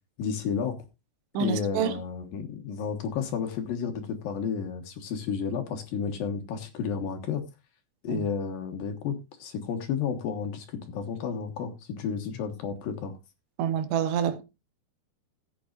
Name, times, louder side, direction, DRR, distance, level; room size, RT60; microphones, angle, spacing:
voice 1, 0.2-0.8 1.4-7.4 8.0-13.1, left 6 dB, 65° left, 2.8 m, -32 dB
voice 2, 1.3-2.0 8.1-8.2 13.6-14.4, right 8 dB, 85° right, 3.2 m, -27 dB
17.5 x 8.6 x 2.5 m
omnidirectional pair, 4.8 m